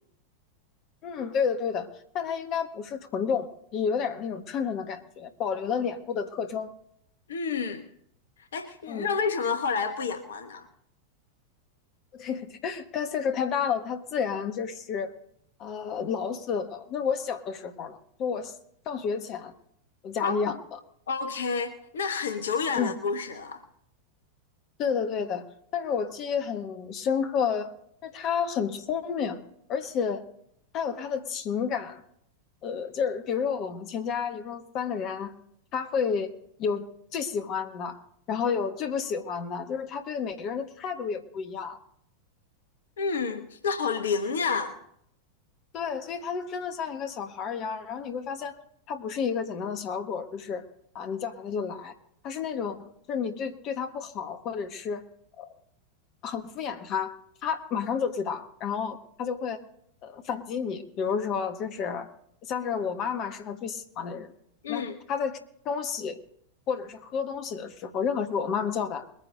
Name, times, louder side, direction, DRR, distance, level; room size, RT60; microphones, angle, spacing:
voice 1, 1.0-6.7 8.9-9.1 12.1-15.1 15.6-18.6 18.8-19.5 20.0-20.8 22.7-23.0 24.8-25.5 25.7-27.7 28.0-29.4 29.7-30.2 30.7-32.0 32.6-35.3 35.7-36.3 36.6-38.0 38.3-41.8 45.7-48.6 48.9-50.6 50.9-51.9 52.2-55.0 55.4-55.5 56.2-59.6 60.0-62.1 62.5-64.3 64.7-65.4 65.6-66.2 66.7-69.1, left 6 dB, 35° left, 7 dB, 1.5 m, -31 dB
voice 2, 7.3-7.8 8.5-10.6 20.2-20.5 21.1-23.6 43.0-44.8 64.6-65.0, left 5 dB, 65° left, 8 dB, 1.1 m, -29 dB
21.5 x 9.9 x 3.8 m, 0.68 s
figure-of-eight pair, 90°, 0 cm